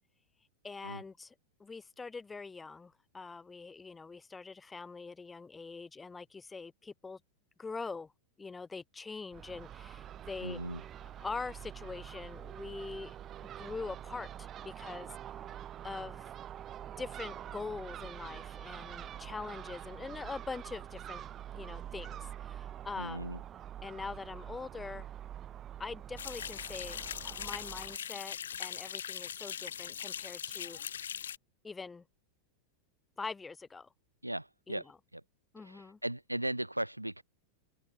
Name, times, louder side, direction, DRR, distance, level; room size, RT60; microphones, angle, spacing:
voice 1, 0.6-1.3 1.6-7.2 7.6-8.1 8.4-10.6 11.0-13.2 13.6-15.6 15.8-16.3 17.0-21.2 21.5-23.3 23.8-25.1 25.8-27.0 27.2-30.8 31.6-32.0 33.2-33.9 34.7-35.0 35.5-36.0, left 4 dB, 15° left, 1.8 m, -43 dB
Crow / Gull seagull, 9.3-28.0, right 10 dB, 30° right, 4.1 m, -46 dB
voice 2, 10.4-10.8 23.0-23.4 34.2-34.8 35.1-35.2 35.6-37.2, right 1 dB, 85° right, 1.4 m, -37 dB
sound 1, 26.2-31.4, left 8 dB, 65° left, 1.0 m, -40 dB
figure-of-eight pair, 90°, 0 cm